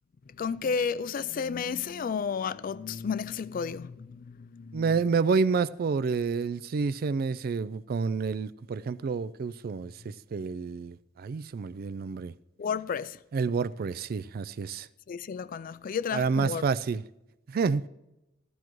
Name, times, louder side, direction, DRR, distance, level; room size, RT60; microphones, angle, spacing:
voice 1, 0.3-5.1 12.6-13.2 15.1-16.6, left 6 dB, 45° left, 0.3 m, -32 dB
voice 2, 4.7-12.3 13.3-14.9 16.1-17.0 17.5-17.9, right 5 dB, 50° right, 0.3 m, -29 dB
13.5 x 13.5 x 3.1 m
head